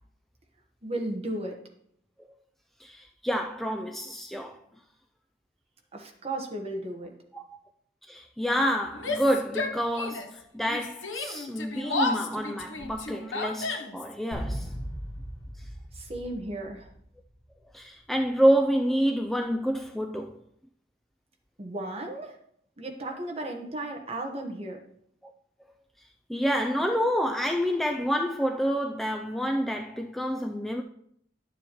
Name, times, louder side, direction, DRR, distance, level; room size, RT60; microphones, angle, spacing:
voice 1, 0.8-1.6 5.9-7.1 15.9-16.9 21.6-22.4 22.8-24.8, right 1 dB, 35° right, 1.2 m, -35 dB
voice 2, 2.8-4.6 7.3-7.6 8.1-14.7 15.6-15.7 17.7-20.4 25.2-25.3 26.0-30.8, equal, ahead, 0.3 m, -28 dB
Yell, 8.9-10.4 10.7-14.1, left 3 dB, 90° left, 0.9 m, -32 dB
sound 1, 14.3-17.2, equal, 30° left, 1.7 m, -37 dB
11.0 x 7.1 x 3.0 m
head